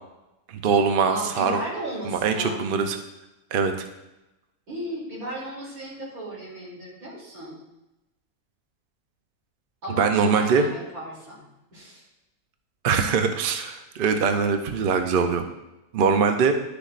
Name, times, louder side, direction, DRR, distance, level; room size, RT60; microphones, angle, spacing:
voice 1, 0.5-1.6 2.0-3.0 3.5-3.9 10.0-10.6 12.8-15.4 15.9-16.5, right 5 dB, 50° right, 6 dB, 0.7 m, -22 dB
voice 2, 1.0-2.6 4.7-7.6 9.8-11.4 11.7-12.1, right 1 dB, 85° right, -6 dB, 3.6 m, -34 dB
11.5 x 6.8 x 2.5 m, 0.95 s
omnidirectional pair, 1.5 m